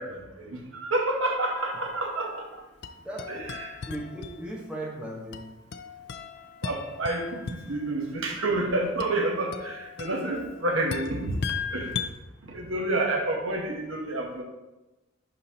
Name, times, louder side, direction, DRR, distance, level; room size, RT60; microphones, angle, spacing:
voice 1, 0.0-2.6 3.3-3.8 6.6-11.4 11.7-12.0 12.5-14.4, right 2 dB, 75° right, 2 dB, 1.1 m, -29 dB
sound 1, 1.5-2.4 2.8-4.8 5.3-8.0 9.0-12.1, left 6 dB, 55° left, 0.4 m, -38 dB
voice 2, 3.0-3.5 3.9-5.4, right 1 dB, 5° right, -3 dB, 1.1 m, -37 dB
10.5 x 3.9 x 2.9 m, 1.0 s
head